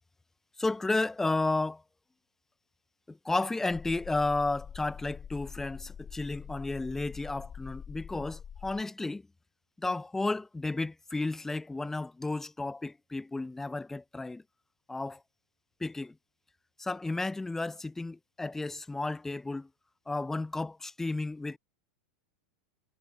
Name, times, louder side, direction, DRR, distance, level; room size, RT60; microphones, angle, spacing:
voice 1, 0.6-1.8 3.1-9.2 9.8-14.4 14.9-15.2 15.8-16.1 16.8-19.7 20.1-21.6, left 2 dB, 5° left, 0.4 m, -32 dB
sound 1, 3.7-8.8, left 8 dB, 25° left, 0.8 m, -45 dB
hypercardioid pair, 110°, 5 cm